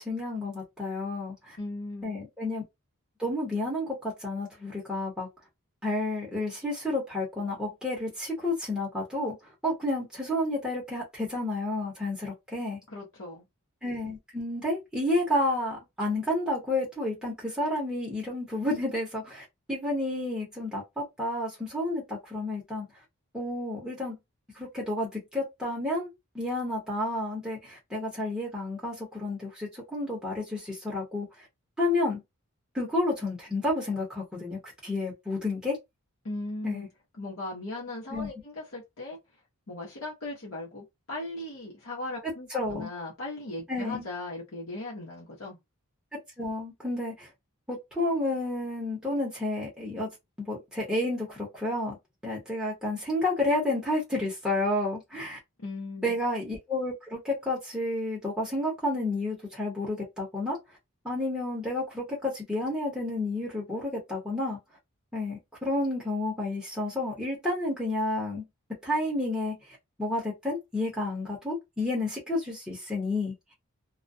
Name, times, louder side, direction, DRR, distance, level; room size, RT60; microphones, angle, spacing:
voice 1, 0.0-1.6 2.0-2.6 3.2-5.3 5.8-9.4 9.6-12.8 13.8-22.9 23.3-24.2 24.6-26.1 26.3-31.3 31.8-32.2 32.7-35.8 36.6-36.9 38.1-38.3 42.5-42.9 43.7-44.1 46.4-47.3 47.7-50.1 50.4-52.0 52.2-55.4 56.0-60.6 61.0-64.6 65.1-68.4 68.8-69.5 70.0-73.3, left 1 dB, 5° right, 0.8 m, -30 dB
voice 2, 1.6-2.2 12.9-13.4 36.2-36.9 37.2-39.2 39.7-45.6 55.6-56.2, left 2 dB, 65° left, 0.9 m, -38 dB
2.3 x 2.2 x 2.6 m
head